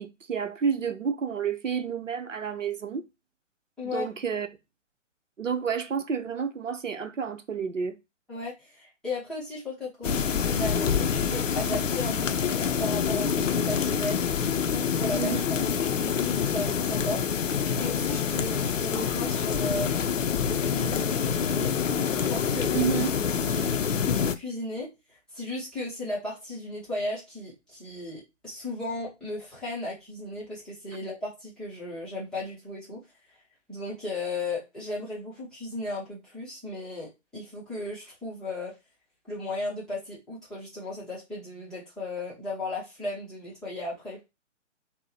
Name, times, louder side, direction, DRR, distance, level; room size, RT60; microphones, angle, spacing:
voice 1, 0.0-3.0 3.8-4.5 5.4-8.0 15.2-15.4 22.7-23.1, right 6 dB, 80° right, 0.7 m, -30 dB
voice 2, 8.3-14.2 14.7-17.2 17.5-19.9 20.4-21.7 22.2-22.9 23.4-24.9 25.3-33.0 33.7-38.7 39.3-44.2, left 2 dB, ahead, 0.6 m, -35 dB
sound 1, 10.0-24.4, left 7 dB, 80° left, 0.5 m, -26 dB
5.4 x 2.1 x 2.7 m
figure-of-eight pair, 135°, 38 cm